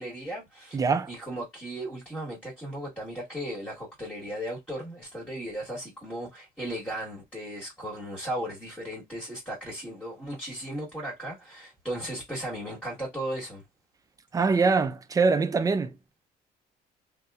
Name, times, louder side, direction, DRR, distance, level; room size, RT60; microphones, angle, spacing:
voice 1, 0.0-0.8 1.1-13.6, right 1 dB, 10° left, 1.3 m, -36 dB
voice 2, 0.7-1.1 14.3-15.9, right 4 dB, 20° right, 0.4 m, -23 dB
2.8 x 2.0 x 2.3 m
cardioid pair, 110°, 17 cm